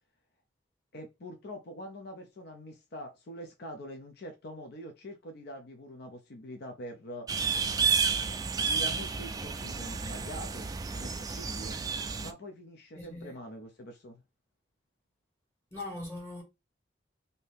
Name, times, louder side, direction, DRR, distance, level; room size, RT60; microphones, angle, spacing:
voice 1, 0.9-7.3 8.6-11.8 12.2-14.2, equal, 60° left, 0.6 m, -44 dB
sound 1, 7.3-12.3, right 5 dB, 20° right, 0.3 m, -31 dB
voice 2, 12.9-13.3 15.7-16.4, left 2 dB, 15° left, 1.6 m, -40 dB
2.7 x 2.7 x 3.4 m
head